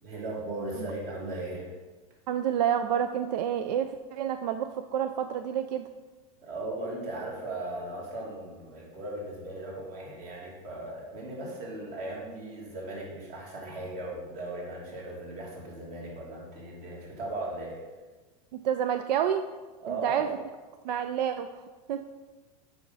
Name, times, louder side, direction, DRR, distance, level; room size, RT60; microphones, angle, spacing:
voice 1, 0.0-1.7 6.4-17.8 19.8-20.3, right 2 dB, 50° right, -3 dB, 2.5 m, -37 dB
voice 2, 2.3-5.9 18.5-19.4 19.9-20.3 20.8-21.6 21.9-22.0, right 9 dB, 85° right, 8 dB, 0.4 m, -29 dB
7.7 x 5.7 x 4.0 m, 1.3 s
supercardioid pair, 145°, 20 cm